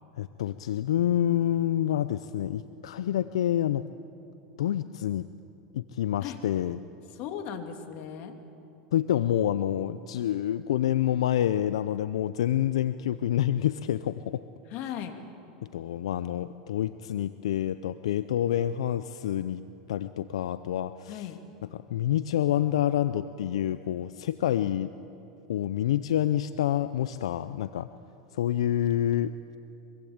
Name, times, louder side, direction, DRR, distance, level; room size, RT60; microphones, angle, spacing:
voice 1, 0.2-3.8 4.6-5.3 5.7-6.8 8.9-14.4 15.6-19.6 19.9-21.2 21.7-24.9 25.5-27.9 28.3-29.3, left 11 dB, 85° left, 13 dB, 0.6 m, -27 dB
voice 2, 7.1-8.4 14.7-15.2 21.1-21.4, left 9 dB, 55° left, 6 dB, 2.8 m, -37 dB
25.0 x 23.5 x 8.8 m, 2.9 s
supercardioid pair, 110°, 3 cm